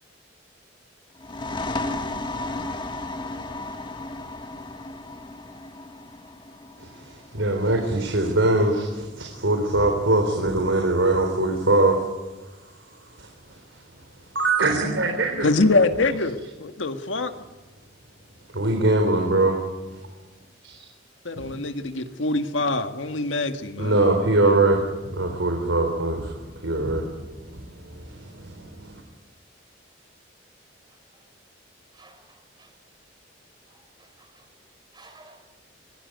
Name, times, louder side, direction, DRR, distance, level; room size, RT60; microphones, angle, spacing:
sound 1, 1.2-8.6, left 2 dB, 25° left, 1.4 m, -34 dB
voice 1, 6.8-12.0 12.9-13.8 14.3-15.5 18.5-19.6 19.9-20.0 20.6-20.9 21.4-21.5 23.8-24.8 25.1-29.0, right 2 dB, 85° right, 4.0 m, -23 dB
voice 2, 15.4-17.3 21.2-24.0, left 2 dB, 80° left, 1.8 m, -24 dB
voice 3, 30.9-31.2 31.9-32.8 33.7-34.5 34.9-35.4, right 2 dB, 20° right, 4.6 m, -54 dB
25.0 x 18.5 x 9.4 m
head